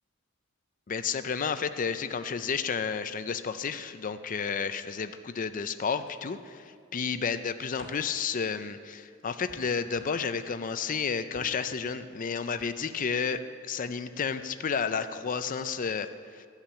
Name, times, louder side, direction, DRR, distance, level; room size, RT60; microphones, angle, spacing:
voice 1, 0.9-16.5, left 6 dB, 40° left, 11 dB, 0.5 m, -31 dB
sound 1, 6.0-6.7 7.2-8.1 9.5-10.9 11.3-11.6 12.5-12.7 13.1-13.2, left 1 dB, 65° left, 2.4 m, -52 dB
14.5 x 5.7 x 8.7 m, 2.1 s
head